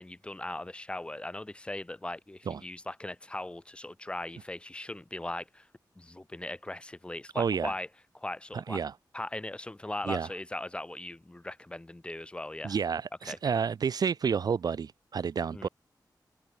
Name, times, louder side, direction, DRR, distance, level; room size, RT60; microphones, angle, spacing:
voice 1, 0.0-5.7 6.0-7.9 8.1-8.8 9.1-12.8 13.2-13.4 15.5-15.7, left 1 dB, 15° left, 1.0 m, -39 dB
voice 2, 7.4-7.7 8.5-8.9 10.1-10.3 12.6-15.7, right 6 dB, 60° right, 0.4 m, -30 dB
open air
wide cardioid pair, 165°, 8 cm